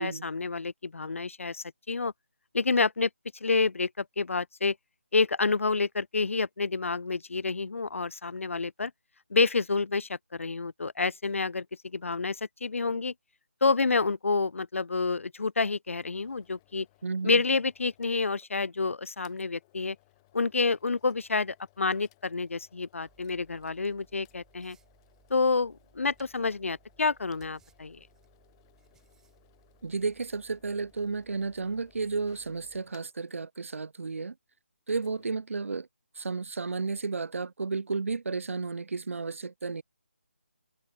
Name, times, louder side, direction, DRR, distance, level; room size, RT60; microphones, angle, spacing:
voice 1, 0.0-2.1 2.5-3.1 3.4-4.8 5.1-8.9 9.3-13.1 13.6-16.9 17.2-20.0 20.3-24.8 25.3-28.0, left 4 dB, 75° left, 0.5 m, -28 dB
sound 1, 15.9-18.5 18.8-18.9 19.2-33.4 34.8-35.4, left 21 dB, 20° left, 1.7 m, -65 dB
voice 2, 17.0-17.4 29.8-34.3 34.9-35.9 36.2-39.8, right 4 dB, 80° right, 0.4 m, -32 dB
sound 2, 23.1-32.8, right 7 dB, 5° right, 7.3 m, -64 dB
open air
figure-of-eight pair, 160°, 7 cm